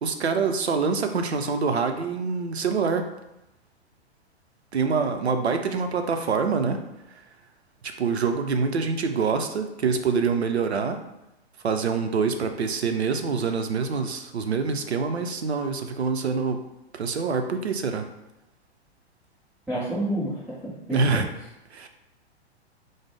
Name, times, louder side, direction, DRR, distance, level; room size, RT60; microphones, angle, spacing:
voice 1, 0.0-3.1 4.7-6.8 7.1-7.2 7.8-11.0 11.6-16.6 16.9-18.1 20.9-21.3 21.7-21.9, right 5 dB, 75° right, 6 dB, 0.5 m, -25 dB
voice 2, 19.7-21.2, right 1 dB, 5° right, -11 dB, 0.6 m, -29 dB
4.9 x 2.0 x 3.4 m, 0.91 s
figure-of-eight pair, 105°, 33 cm